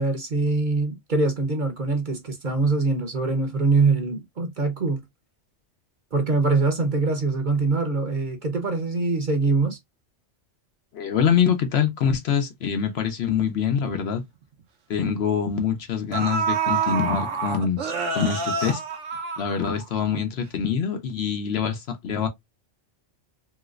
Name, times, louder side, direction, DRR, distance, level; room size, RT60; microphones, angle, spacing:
voice 1, 0.0-5.0 6.1-9.8, right 3 dB, 45° right, 0.9 m, -23 dB
voice 2, 10.9-14.2 14.9-17.8 18.1-18.8 19.4-22.3, left 7 dB, 65° left, 0.9 m, -24 dB
sound 1, 13.9-14.0 14.4-14.6 15.6-15.7 16.1-20.0 20.4-20.5, right 5 dB, 80° right, 1.1 m, -27 dB
3.1 x 3.0 x 2.3 m
omnidirectional pair, 1.2 m